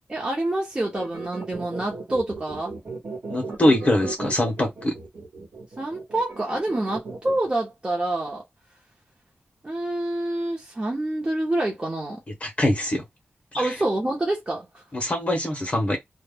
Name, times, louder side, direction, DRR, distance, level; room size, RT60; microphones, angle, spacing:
voice 1, 0.1-2.7 5.8-8.4 9.6-12.2 13.6-14.8, right 1 dB, 25° right, 0.7 m, -27 dB
sound 1, 0.8-7.6, right 3 dB, 60° right, 1.0 m, -36 dB
voice 2, 3.3-5.0 12.4-13.0 13.5-13.7 14.9-16.0, left 1 dB, 35° left, 0.7 m, -23 dB
2.1 x 2.1 x 3.3 m
wide cardioid pair, 150°, 4 cm